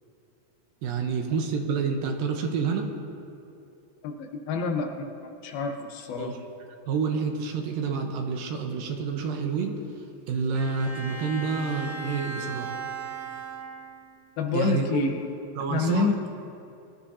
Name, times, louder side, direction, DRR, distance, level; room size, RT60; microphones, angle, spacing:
voice 1, 0.8-3.0 6.2-6.4 6.9-9.8 10.3-12.8 14.5-15.0 15.6-16.1, right 5 dB, 80° right, 4 dB, 2.6 m, -28 dB
voice 2, 4.0-5.1 5.4-6.3 14.4-15.3 15.7-16.2, left 5 dB, 85° left, 3 dB, 2.9 m, -28 dB
Bowed string instrument, 10.5-14.2, right 4 dB, 50° right, 1.2 m, -37 dB
21.5 x 12.5 x 2.8 m, 2.7 s
omnidirectional pair, 4.2 m